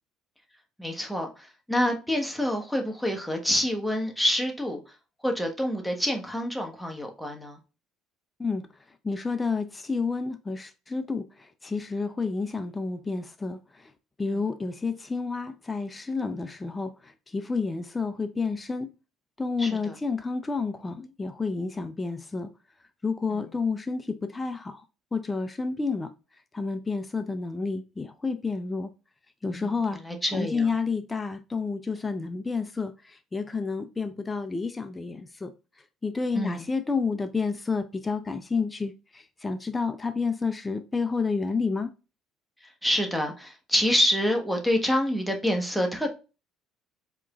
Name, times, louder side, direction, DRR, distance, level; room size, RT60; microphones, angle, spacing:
voice 1, 0.8-4.8 5.2-7.6 19.6-19.9 29.5-30.7 36.3-36.6 42.8-46.1, equal, ahead, 1.1 m, -27 dB
voice 2, 9.0-13.9 14.2-18.9 19.4-22.5 23.0-24.8 25.1-26.1 26.5-28.9 29.4-30.0 30.3-35.5 36.0-41.9, left 4 dB, 20° left, 0.5 m, -30 dB
4.6 x 3.0 x 2.4 m
hypercardioid pair, 60°, 0 cm